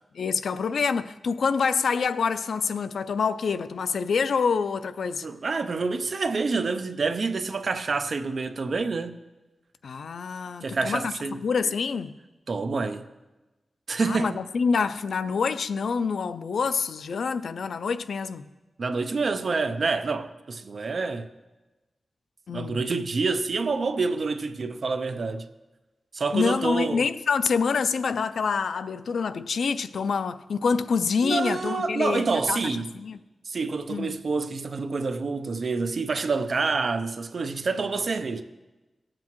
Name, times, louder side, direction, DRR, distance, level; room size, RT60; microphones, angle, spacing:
voice 1, 0.1-5.3 9.8-12.1 14.0-18.5 22.5-22.8 26.3-33.2 33.9-34.1, left 5 dB, 90° left, 0.3 m, -26 dB
voice 2, 5.2-9.2 10.6-11.4 12.5-13.1 13.9-14.4 18.8-21.3 22.5-25.5 26.1-27.1 31.2-32.9 33.5-38.4, right 4 dB, 50° right, 0.6 m, -27 dB
18.5 x 7.5 x 3.0 m
wide cardioid pair, 145°, 0 cm